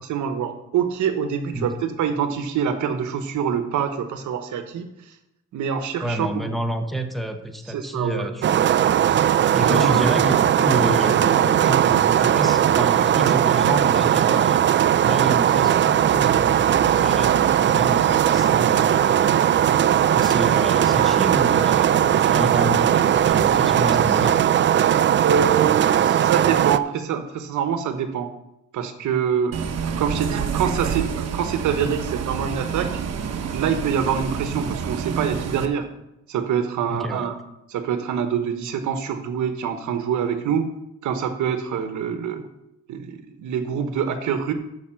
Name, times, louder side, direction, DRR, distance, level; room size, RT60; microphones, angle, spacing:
voice 1, 0.1-4.9 5.5-6.5 7.7-8.6 9.6-10.0 25.2-28.3 28.7-29.6 30.0-33.0 33.5-35.9 36.3-37.4 37.7-40.7 41.0-42.5 42.9-44.5, right 7 dB, 75° right, 8 dB, 1.1 m, -25 dB
voice 2, 6.0-8.7 9.5-14.7 15.0-19.2 20.1-24.4 36.9-37.3, right 1 dB, ahead, 4 dB, 1.2 m, -29 dB
sound 1, 8.4-26.8, right 10 dB, 40° right, 0.4 m, -18 dB
sound 2, 16.0-24.2, right 4 dB, 25° right, 2.0 m, -38 dB
Bus, 29.5-35.7, right 7 dB, 55° right, 1.0 m, -28 dB
6.6 x 6.5 x 7.5 m, 0.87 s
cardioid pair, 90°, 30 cm